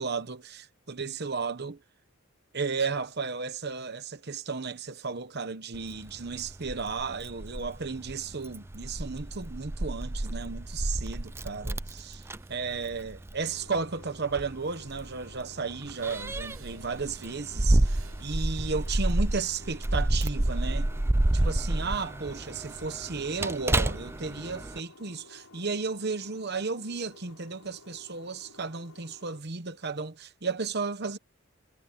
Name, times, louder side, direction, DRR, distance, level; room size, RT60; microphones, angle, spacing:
voice 1, 0.0-1.8 2.5-12.2 12.5-20.9 21.3-31.2, right 4 dB, 50° right, 1.1 m, -34 dB
Keys jangling, 5.7-24.8, right 1 dB, 10° right, 0.4 m, -30 dB
sound 1, 10.3-18.9, right 13 dB, 70° right, 7.6 m, -63 dB
sound 2, 13.4-29.4, left 2 dB, 85° left, 5.3 m, -54 dB
head